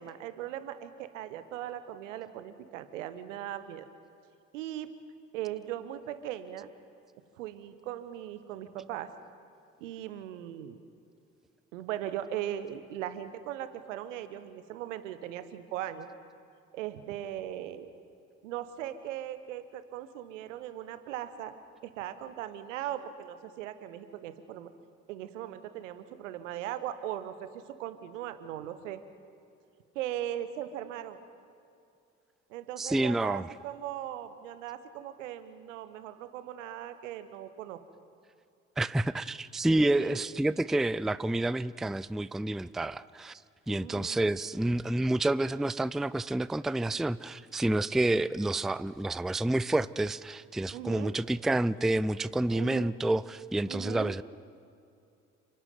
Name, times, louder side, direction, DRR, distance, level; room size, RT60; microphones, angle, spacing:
voice 1, 0.0-3.9 4.5-4.9 5.3-6.7 7.4-9.1 9.8-10.8 11.7-16.1 16.7-17.9 18.4-21.5 22.0-24.7 25.1-29.0 29.9-31.2 32.5-37.8 40.0-40.2 43.8-44.3 48.0-48.2 50.7-51.1 52.5-52.9 53.7-54.1, right 12 dB, 75° right, 12 dB, 1.2 m, -39 dB
voice 2, 32.8-33.5 38.8-43.4 43.7-54.2, right 2 dB, ahead, 18 dB, 0.5 m, -29 dB
29.5 x 11.0 x 9.4 m, 2.5 s
figure-of-eight pair, 45°, 38 cm